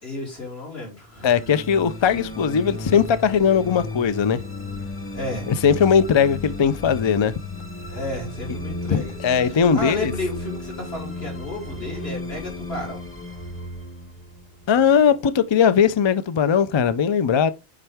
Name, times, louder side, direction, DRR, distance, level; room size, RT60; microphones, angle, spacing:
voice 1, 0.0-1.3 5.1-5.5 7.9-9.1 9.4-13.0, left 2 dB, 75° left, 3.6 m, -32 dB
sound 1, 1.1-15.5, left 2 dB, 15° left, 0.8 m, -35 dB
voice 2, 1.2-4.4 5.5-7.3 8.9-10.1 14.7-17.5, left 7 dB, 50° left, 0.3 m, -19 dB
7.4 x 4.5 x 3.4 m
omnidirectional pair, 1.1 m